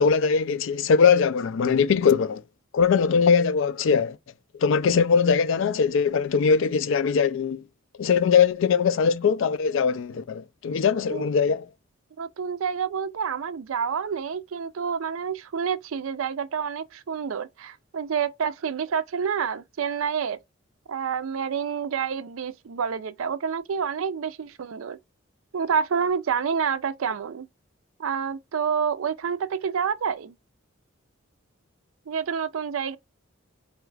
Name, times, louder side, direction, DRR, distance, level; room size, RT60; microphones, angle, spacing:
voice 1, 0.0-2.4 2.7-4.2 4.5-7.6 8.0-11.7, left 6 dB, 65° left, 0.3 m, -21 dB
voice 2, 12.2-20.4 20.9-25.0 25.5-27.5 28.0-30.4 32.1-33.0, right 6 dB, 75° right, 0.4 m, -28 dB
4.5 x 2.3 x 3.2 m
head